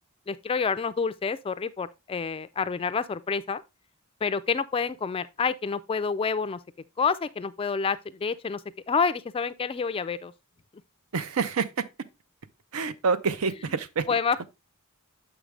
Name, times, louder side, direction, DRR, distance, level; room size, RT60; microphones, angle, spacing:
voice 1, 0.3-3.6 4.2-6.6 7.0-10.3 14.1-14.5, left 5 dB, 25° left, 0.3 m, -28 dB
voice 2, 11.1-11.8 12.7-14.1, right 5 dB, 75° right, 0.6 m, -27 dB
6.9 x 5.0 x 3.2 m
head